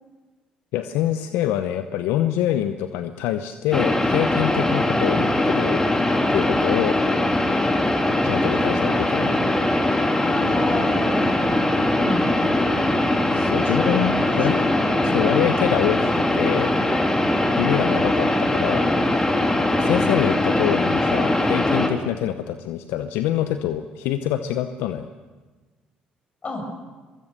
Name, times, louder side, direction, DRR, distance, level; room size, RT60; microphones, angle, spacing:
voice 1, 0.7-5.8 6.3-7.0 8.2-9.4 13.3-14.6 15.0-16.7 17.6-18.9 19.8-25.1, left 12 dB, 80° left, 9 dB, 0.8 m, -25 dB
sound 1, 3.7-21.9, left 1 dB, 15° left, 3.2 m, -21 dB
voice 2, 10.2-11.7 12.0-12.7 13.7-14.7 26.4-26.7, left 2 dB, 40° left, 3 dB, 7.8 m, -31 dB
23.5 x 22.0 x 6.7 m, 1.3 s
hypercardioid pair, 55°, 4 cm